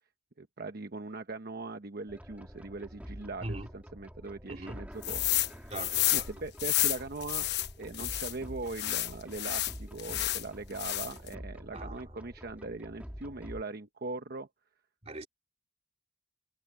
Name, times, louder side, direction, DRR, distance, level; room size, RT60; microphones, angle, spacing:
voice 1, 0.4-5.2 5.5-5.7 6.1-7.5 7.8-14.5, right 3 dB, 55° right, 1.0 m, -40 dB
sound 1, 2.1-13.6, equal, 10° right, 2.1 m, -47 dB
voice 2, 4.5-4.8 5.7-6.3 11.7-12.2 15.0-15.3, right 1 dB, 35° right, 3.4 m, -41 dB
sound 2, 5.0-5.5 5.7-8.3 8.7-10.4 10.8-11.3, left 14 dB, 60° left, 0.9 m, -30 dB
head